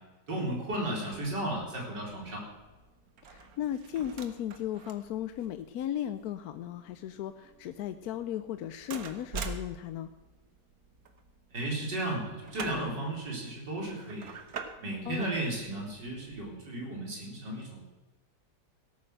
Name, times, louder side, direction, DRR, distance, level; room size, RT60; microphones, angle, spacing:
voice 1, 0.3-2.4 11.5-14.3 14.8-17.8, right 1 dB, 85° right, -2 dB, 4.5 m, -34 dB
sound 1, 1.1-16.5, right 5 dB, 60° right, 1.6 m, -47 dB
voice 2, 3.2-10.1 15.0-15.3, left 11 dB, 70° left, 10 dB, 1.0 m, -36 dB
16.5 x 9.1 x 6.4 m, 1.3 s
omnidirectional pair, 1.8 m